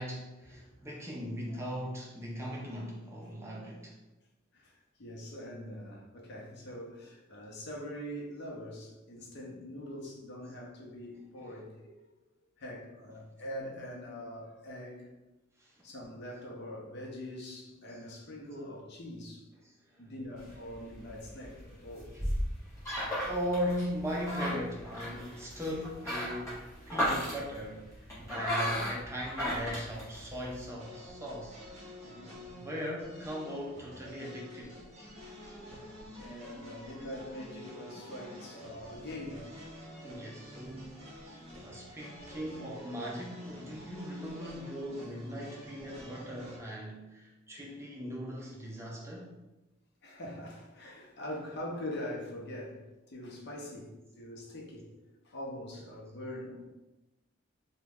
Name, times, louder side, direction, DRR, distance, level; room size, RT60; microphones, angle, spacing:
voice 1, 0.0-4.0 11.4-11.6 15.6-15.8 17.9-18.0 19.6-20.0 21.8-22.2 22.9-23.0 23.3-31.6 32.5-34.8 40.0-41.2 41.6-49.3, equal, 15° right, -3 dB, 0.4 m, -39 dB
voice 2, 4.5-12.1 12.6-15.1 15.8-19.5 20.0-22.1 28.1-28.5 32.0-32.5 36.2-39.5 42.3-42.4 50.0-55.0 55.2-56.7, left 1 dB, 55° left, -2 dB, 0.7 m, -43 dB
sound 1, 20.4-30.7, equal, 15° left, 1.1 m, -36 dB
sound 2, 30.8-46.6, equal, 35° right, 0.8 m, -49 dB
3.0 x 2.2 x 3.4 m, 1.0 s
head